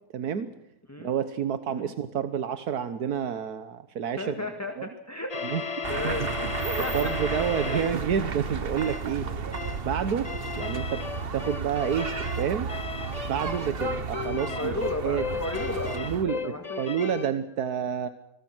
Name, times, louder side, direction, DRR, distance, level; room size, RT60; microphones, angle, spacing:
voice 1, 0.1-0.5 1.0-4.3 4.8-4.9 5.4-5.6 6.9-9.3 9.8-10.3 10.5-11.0 11.3-12.1 12.4-12.7 13.2-14.7 15.0-15.2 15.9-18.1, right 8 dB, 85° right, 11 dB, 1.6 m, -29 dB
voice 2, 4.2-7.1 7.6-7.9 13.8-14.0 14.6-16.0 16.2-16.8, left 1 dB, 10° left, 5 dB, 2.0 m, -35 dB
sound 1, 5.3-8.0 8.8-9.1 9.5-9.9 10.2-17.3, left 6 dB, 30° left, 1.0 m, -35 dB
sound 2, 5.8-16.3, right 5 dB, 40° right, 1.2 m, -33 dB
26.5 x 20.5 x 6.1 m, 0.82 s
omnidirectional pair, 1.6 m